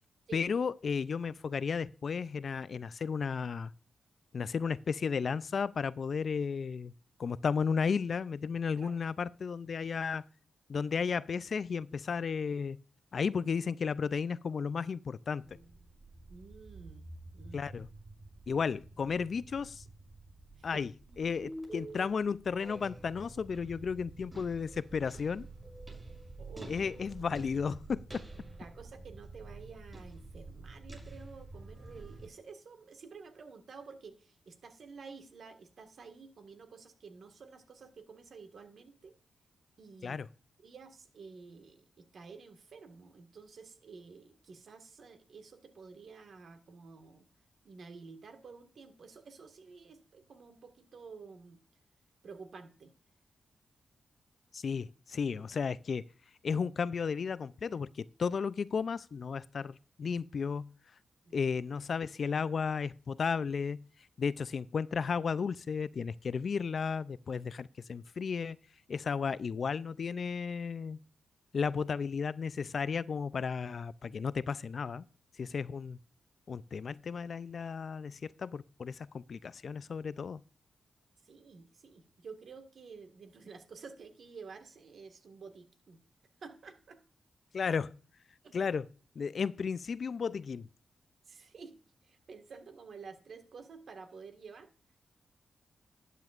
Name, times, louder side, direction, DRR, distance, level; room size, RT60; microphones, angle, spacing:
voice 1, 0.3-3.7 4.3-6.9 7.2-10.2 10.7-12.8 13.1-15.6 17.5-17.9 18.5-19.8 20.6-25.5 26.7-28.2 40.0-40.3 54.5-56.0 56.4-60.8 61.3-63.8 64.2-68.6 68.9-71.0 71.5-75.1 75.4-76.0 76.5-80.4 87.5-88.0 88.5-88.9 89.2-90.7, left 6 dB, 65° left, 0.4 m, -34 dB
sound 1, 15.4-32.3, right 2 dB, 30° right, 6.0 m, -49 dB
voice 2, 16.3-17.7 20.6-20.8 26.4-26.7 28.6-39.2 39.8-40.2 40.6-47.3 47.6-51.6 52.2-52.9 61.3-61.4 81.2-86.0 86.4-87.0 88.4-88.5 91.3-91.8 92.0-94.7, right 5 dB, 70° right, 1.7 m, -51 dB
12.0 x 9.3 x 2.5 m
cardioid pair, 55°, 0 cm